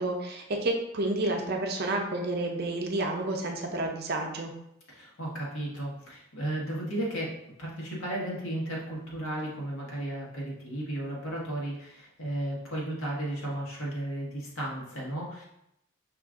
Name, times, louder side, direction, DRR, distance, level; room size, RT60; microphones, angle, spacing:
voice 1, 0.0-4.5, right 2 dB, 50° right, 2 dB, 0.7 m, -30 dB
voice 2, 4.9-7.3 7.6-15.4, right 1 dB, 85° left, -4 dB, 1.6 m, -34 dB
5.3 x 2.6 x 3.6 m, 0.80 s
head